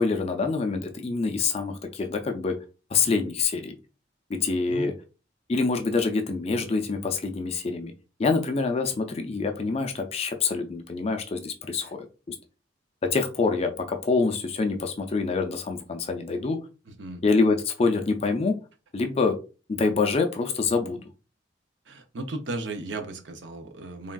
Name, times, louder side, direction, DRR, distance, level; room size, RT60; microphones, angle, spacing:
voice 1, 0.0-2.6 2.9-3.7 4.3-4.9 5.5-7.9 8.2-12.3 13.0-16.6 17.2-18.6 18.9-19.4 19.7-21.0, left 4 dB, 35° left, 5 dB, 0.4 m, -26 dB
voice 2, 16.9-17.2 21.9-24.1, right 2 dB, 75° right, 6 dB, 0.5 m, -35 dB
3.4 x 2.3 x 2.2 m, 0.33 s
head